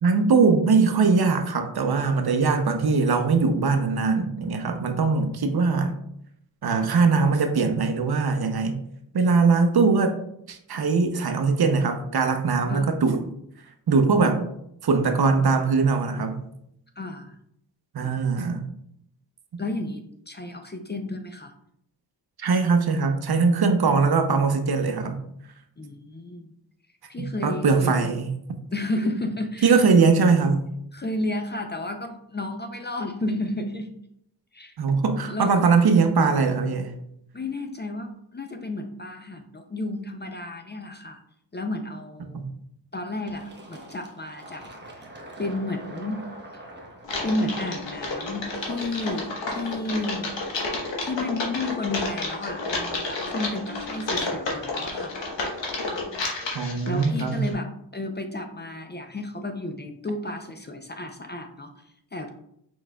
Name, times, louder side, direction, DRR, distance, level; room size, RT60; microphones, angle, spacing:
voice 1, 0.0-5.9 6.6-8.8 9.1-10.2 10.5-13.2 13.9-14.4 14.8-16.4 17.9-18.6 19.5-19.6 22.4-25.2 27.2-28.3 29.6-30.7 34.8-36.9 42.3-42.5 56.5-57.5, right 4 dB, 60° right, 6 dB, 0.7 m, -21 dB
voice 2, 17.0-17.4 18.0-18.2 19.6-21.5 25.8-26.5 27.1-28.2 28.7-29.8 30.9-33.9 34.5-34.8 35.3-35.6 37.3-41.2 41.5-42.4 42.9-45.0 45.4-46.2 46.5-46.7 47.2-50.4 51.0-55.1 56.9-62.3, left 2 dB, 25° left, 5 dB, 0.4 m, -32 dB
Fill (with liquid), 43.3-48.7, right 1 dB, 25° right, 1.0 m, -44 dB
Typing, 47.0-57.5, left 2 dB, 80° left, 1.1 m, -31 dB
4.7 x 4.5 x 2.2 m, 0.74 s
wide cardioid pair, 75°, 43 cm